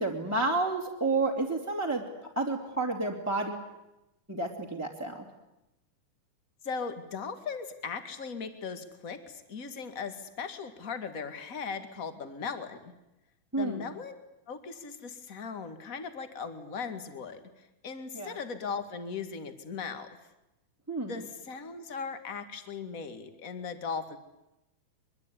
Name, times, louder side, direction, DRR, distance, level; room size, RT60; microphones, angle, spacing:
voice 1, 0.0-2.0 2.4-3.6 4.3-5.2 13.5-13.8 18.1-18.4 20.9-21.2, right 3 dB, 5° right, -2 dB, 2.3 m, -30 dB
voice 2, 6.6-12.9 13.6-14.1 14.5-20.1 21.0-24.2, left 5 dB, 30° left, 9 dB, 1.8 m, -38 dB
24.0 x 23.0 x 9.8 m, 0.92 s
omnidirectional pair, 4.4 m